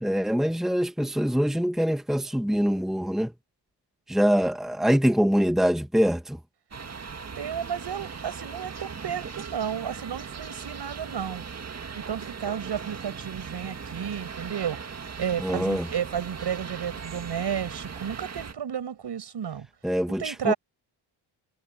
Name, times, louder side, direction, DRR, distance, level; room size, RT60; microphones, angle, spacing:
voice 1, 0.0-3.3 4.1-6.4 15.4-15.9 19.8-20.5, equal, ahead, 1.5 m, -24 dB
sound 1, 6.7-18.5, right 5 dB, 35° right, 1.9 m, -39 dB
voice 2, 7.3-11.4 12.1-14.9 15.2-19.7 20.1-20.5, right 8 dB, 60° right, 6.3 m, -32 dB
cardioid pair, 90°, 47 cm